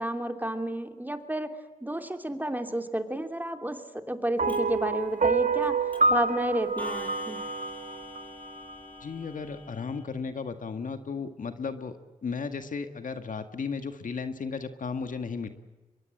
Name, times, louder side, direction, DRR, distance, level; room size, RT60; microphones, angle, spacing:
voice 1, 0.0-1.5 1.8-5.8 6.1-7.4, right 1 dB, 10° right, 6 dB, 2.9 m, -31 dB
sound 1, 4.4-8.7, right 4 dB, 60° right, 1.5 m, -27 dB
Clock, 4.5-4.6 5.6-5.7 5.9-6.2 6.8-10.0, left 2 dB, 10° left, 6.5 m, -44 dB
voice 2, 9.0-15.5, left 5 dB, 70° left, 8 dB, 1.8 m, -35 dB
24.0 x 22.0 x 8.8 m, 1.1 s
cardioid pair, 45°, 14 cm